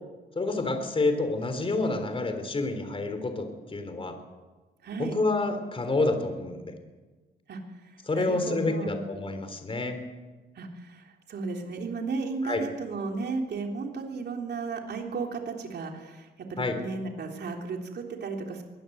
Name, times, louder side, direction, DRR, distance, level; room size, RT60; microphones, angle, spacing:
voice 1, 0.4-4.2 5.0-6.7 8.1-10.0 12.4-12.6 16.6-16.8, left 2 dB, 30° left, 7 dB, 3.6 m, -28 dB
voice 2, 4.8-5.2 7.5-9.0 10.6-18.6, right 4 dB, 65° right, 2 dB, 3.5 m, -34 dB
23.0 x 18.0 x 8.0 m, 1.3 s
cardioid pair, 100°, 19 cm